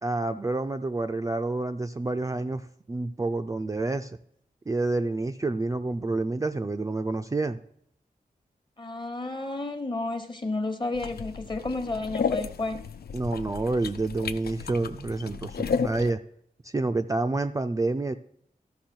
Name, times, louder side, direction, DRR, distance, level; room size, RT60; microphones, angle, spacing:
voice 1, 0.0-4.2 4.7-7.6 13.1-16.2 16.6-18.1, right 2 dB, 20° right, 6 dB, 0.3 m, -28 dB
voice 2, 8.8-12.8, left 2 dB, 30° left, 7 dB, 1.1 m, -31 dB
sound 1, 10.9-16.1, left 5 dB, 85° left, 0.5 m, -33 dB
13.0 x 5.4 x 4.4 m, 0.70 s
wide cardioid pair, 130°, 16 cm